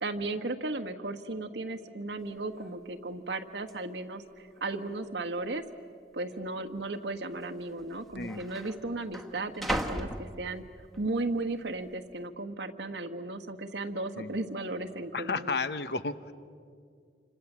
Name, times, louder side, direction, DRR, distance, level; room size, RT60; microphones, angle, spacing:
voice 1, 0.0-5.6 6.1-10.6 11.0-15.6, right 2 dB, 90° right, 5 dB, 1.4 m, -35 dB
sound 1, 2.2-2.3 2.6-3.0 3.7-3.8 4.5-5.0 5.3-5.4 6.3-6.5 7.5-7.6 7.8-11.0 11.5-11.9, right 1 dB, ahead, 1.3 m, -38 dB
voice 2, 15.1-16.3, left 4 dB, 70° left, 12 dB, 1.0 m, -32 dB
28.5 x 25.5 x 7.4 m, 2.2 s
head